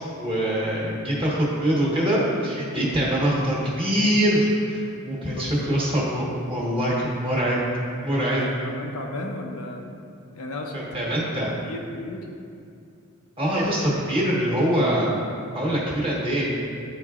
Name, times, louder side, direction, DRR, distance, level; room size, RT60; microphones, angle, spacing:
voice 1, 0.2-7.6 8.0-8.4 10.7-11.5 13.4-15.1 15.5-16.6, equal, 25° right, -6 dB, 1.3 m, -23 dB
voice 2, 5.3-5.8 8.4-10.0 10.3-12.2, left 2 dB, 80° left, 1 dB, 0.7 m, -35 dB
10.5 x 3.9 x 2.4 m, 2.4 s
head